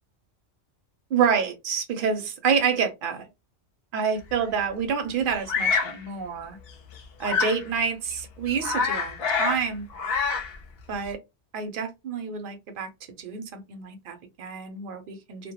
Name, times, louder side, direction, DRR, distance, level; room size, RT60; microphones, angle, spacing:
voice 1, 1.1-3.3 3.9-6.6 7.2-9.9 10.9-11.2 11.5-12.9 13.2-15.5, right 6 dB, 60° right, 0.6 m, -28 dB
Bird vocalization bird call bird song, 5.5-6.0 7.2-7.6 8.1-8.2 8.5-9.6 9.9-10.6, left 5 dB, 65° left, 0.8 m, -26 dB
2.1 x 2.1 x 2.8 m
omnidirectional pair, 1.2 m